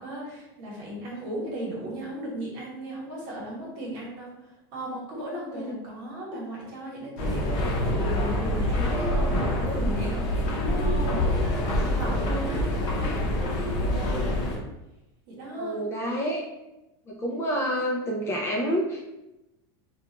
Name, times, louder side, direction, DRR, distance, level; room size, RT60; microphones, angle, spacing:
voice 1, 0.0-4.3 4.7-14.3 15.3-15.8, equal, 55° right, -4 dB, 1.1 m, -36 dB
sound 1, 7.2-14.6, left 1 dB, 50° left, 0.7 m, -26 dB
voice 2, 15.5-16.4 17.1-19.2, equal, 20° left, -1 dB, 0.3 m, -29 dB
2.3 x 2.3 x 2.8 m, 0.96 s
supercardioid pair, 145°, 13 cm